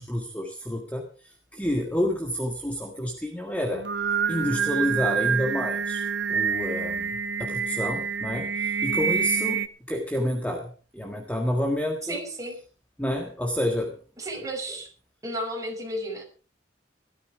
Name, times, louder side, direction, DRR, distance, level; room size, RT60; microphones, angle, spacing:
voice 1, 0.0-3.8 4.3-7.1 7.4-9.6 9.9-12.2 13.0-13.9, equal, 5° left, 2 dB, 1.6 m, -29 dB
Singing, 3.7-9.7, right 6 dB, 65° right, 1.1 m, -27 dB
voice 2, 12.0-12.6 14.2-14.9 15.2-16.2, right 1 dB, 15° right, 0 dB, 5.6 m, -33 dB
16.5 x 13.0 x 4.8 m, 0.36 s
head